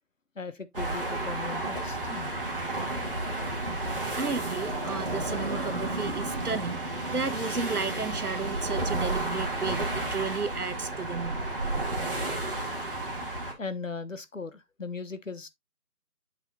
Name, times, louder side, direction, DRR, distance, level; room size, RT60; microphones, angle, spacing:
voice 1, 0.3-2.3 13.6-15.5, left 4 dB, 55° left, 1.3 m, -38 dB
sound 1, 0.7-13.5, right 2 dB, 35° right, 2.3 m, -32 dB
voice 2, 4.1-11.4, right 5 dB, 70° right, 1.2 m, -33 dB
8.6 x 6.6 x 2.4 m
figure-of-eight pair, 175°, 46 cm